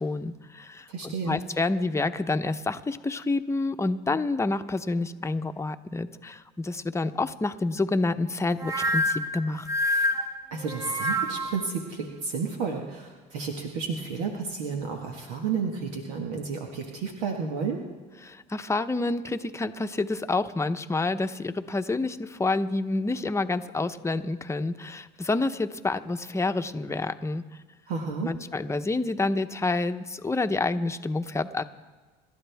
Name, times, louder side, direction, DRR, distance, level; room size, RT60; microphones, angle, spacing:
voice 1, 0.0-9.7 18.2-27.4 28.2-31.6, left 3 dB, 15° left, 8 dB, 0.9 m, -28 dB
voice 2, 0.9-1.4 10.5-17.8 27.9-28.3, right 5 dB, 80° right, 2 dB, 1.6 m, -31 dB
sound 1, 8.6-11.7, equal, 15° right, 1.5 m, -27 dB
27.0 x 12.0 x 3.5 m, 1.4 s
supercardioid pair, 85°, 20 cm